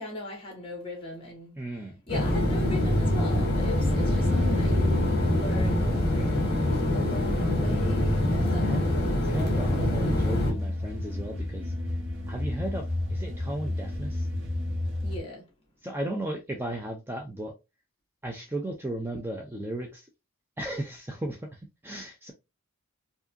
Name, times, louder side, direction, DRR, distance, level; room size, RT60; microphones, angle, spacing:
voice 1, 0.0-1.5 2.1-5.9 6.9-8.8 15.0-15.4, left 1 dB, 25° left, 1.9 m, -38 dB
voice 2, 1.6-2.0 6.1-6.5 8.6-8.9 9.2-11.7 12.3-14.3 15.8-17.5 18.2-20.1 20.6-22.3, right 1 dB, 10° right, 0.5 m, -35 dB
sound 1, 2.1-10.5, left 1 dB, 45° left, 1.6 m, -25 dB
sound 2, 3.6-15.2, left 1 dB, 60° right, 1.3 m, -32 dB
4.8 x 2.7 x 2.6 m
head